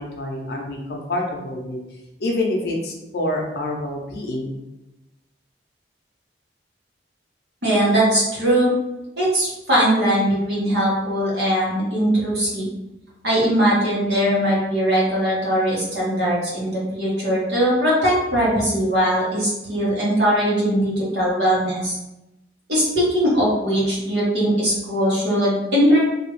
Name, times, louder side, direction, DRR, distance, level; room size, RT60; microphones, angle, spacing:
voice 1, 0.0-1.8 2.2-4.6, left 1 dB, 60° left, 0 dB, 0.6 m, -27 dB
voice 2, 7.6-8.7 9.2-12.7 13.2-22.0 22.7-26.0, equal, 75° right, -7 dB, 1.3 m, -20 dB
2.7 x 2.4 x 3.0 m, 0.95 s
head